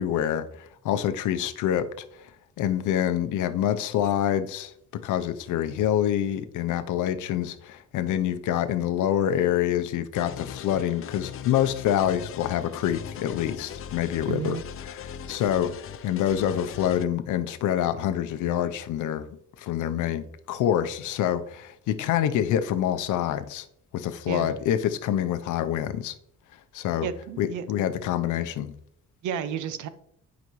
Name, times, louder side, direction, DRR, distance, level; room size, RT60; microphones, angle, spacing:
voice 1, 0.0-2.1 2.6-14.6 14.8-15.7 16.0-19.3 19.6-23.7 23.9-26.1 26.7-27.1 27.4-28.7, left 10 dB, 85° left, 0.7 m, -26 dB
sound 1, 10.2-17.0, left 9 dB, 45° left, 0.6 m, -39 dB
voice 2, 14.3-14.6 24.3-24.5 27.0-27.6 29.2-29.9, right 8 dB, 80° right, 0.7 m, -32 dB
11.0 x 5.1 x 3.1 m
cardioid pair, 90°, 30 cm